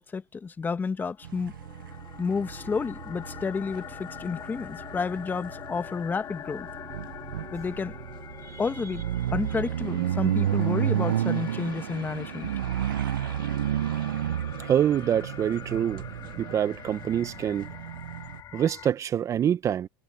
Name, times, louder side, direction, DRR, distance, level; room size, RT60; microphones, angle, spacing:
voice 1, 0.0-1.5 2.2-6.7 7.5-7.9 8.6-9.0 9.3-12.5, left 5 dB, 15° left, 1.7 m, -31 dB
sound 1, 1.1-18.9, left 10 dB, 35° left, 2.3 m, -44 dB
sound 2, 1.2-18.4, right 11 dB, 90° right, 0.8 m, -32 dB
voice 2, 14.7-16.0 16.4-17.7 18.5-19.9, right 9 dB, 30° right, 0.7 m, -25 dB
hypercardioid pair, 115°, 11 cm